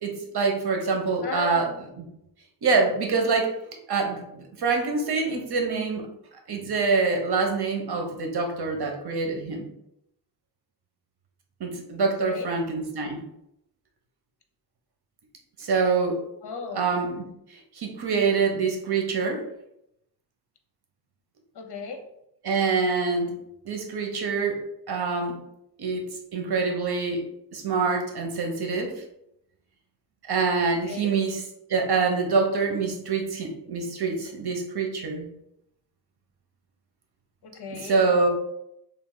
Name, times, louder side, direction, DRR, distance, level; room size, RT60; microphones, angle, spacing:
voice 1, 0.0-1.7 2.0-2.1 2.6-3.5 3.9-6.1 6.5-9.7 11.6-13.2 15.6-16.2 16.7-19.5 22.4-23.3 23.6-25.4 25.8-26.1 26.3-27.2 27.5-29.0 30.3-31.4 31.7-35.3 37.8-38.3, right 4 dB, 75° right, 3 dB, 0.9 m, -25 dB
voice 2, 1.2-1.8 12.0-12.5 16.4-16.9 21.5-22.0 30.7-31.1 37.4-38.0, left 4 dB, 80° left, 5 dB, 0.7 m, -35 dB
3.3 x 2.7 x 3.8 m, 0.80 s
wide cardioid pair, 125°, 39 cm